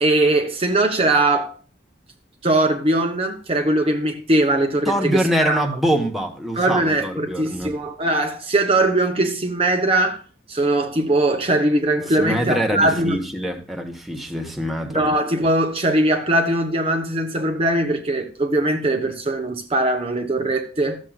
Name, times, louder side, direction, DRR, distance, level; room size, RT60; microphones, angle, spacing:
voice 1, 0.0-1.5 2.4-5.6 6.6-10.2 10.5-13.2 14.9-21.0, right 2 dB, 30° right, 1.1 m, -20 dB
voice 2, 4.8-7.7 12.2-15.1, equal, ahead, 1.3 m, -24 dB
13.0 x 7.4 x 2.4 m
head